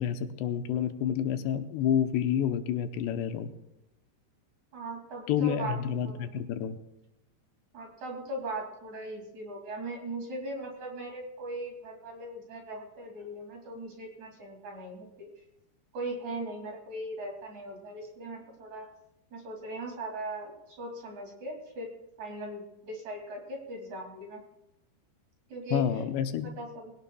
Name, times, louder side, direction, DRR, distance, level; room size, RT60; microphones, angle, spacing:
voice 1, 0.0-3.5 5.3-6.8 25.7-26.5, left 9 dB, 85° left, 8 dB, 2.9 m, -29 dB
voice 2, 4.7-5.8 6.0-6.3 7.7-15.3 15.9-18.9 19.3-21.9 22.2-24.4 25.5-25.8 26.6-26.9, right 2 dB, 50° right, 1 dB, 3.5 m, -39 dB
22.0 x 17.0 x 2.3 m, 0.90 s
omnidirectional pair, 4.8 m